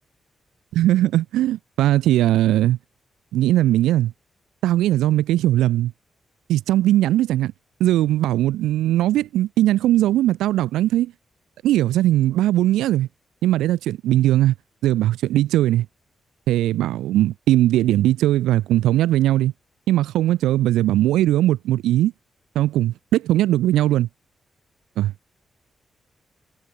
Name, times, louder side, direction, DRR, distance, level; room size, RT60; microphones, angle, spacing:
voice 1, 0.7-2.8 3.3-4.1 4.6-5.9 6.5-7.5 7.8-11.1 11.6-13.1 13.4-14.5 14.8-15.9 16.5-19.5 19.9-22.1 22.5-24.1 25.0-25.1, right 14 dB, 90° right, 1.2 m, -19 dB
supercardioid pair, 50°, 0 cm